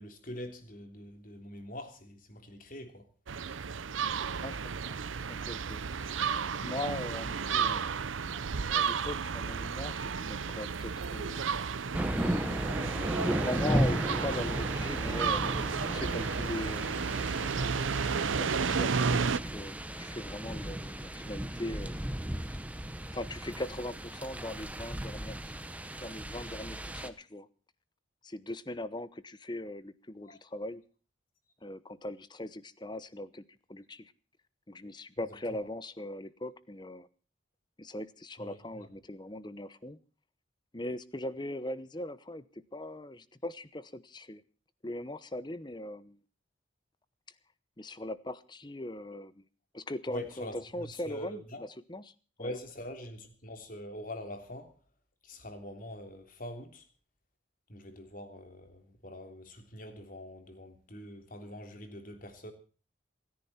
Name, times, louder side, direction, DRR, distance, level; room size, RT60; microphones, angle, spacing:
voice 1, 0.0-3.1 8.3-8.4 9.6-9.7 22.5-22.6 30.2-30.4 35.6-35.7 38.4-38.9 50.1-51.6 52.4-54.7 55.2-56.8 57.7-62.5, left 1 dB, 45° left, 3.3 m, -44 dB
sound 1, 3.3-19.4, right 5 dB, 85° right, 0.7 m, -32 dB
voice 2, 4.3-5.0 5.3-5.8 6.6-7.9 8.7-11.5 13.5-15.4 15.9-17.0 18.4-22.0 23.1-25.5 26.0-27.5 28.2-30.8 31.6-33.4 33.7-34.1 34.7-37.1 37.8-40.0 40.7-44.4 44.8-46.2 47.8-49.4 49.7-51.4 51.9-52.1 52.4-52.5, left 1 dB, 20° left, 0.9 m, -40 dB
sound 2, 11.9-27.1, right 1 dB, 5° right, 1.0 m, -35 dB
27.5 x 10.5 x 4.3 m
head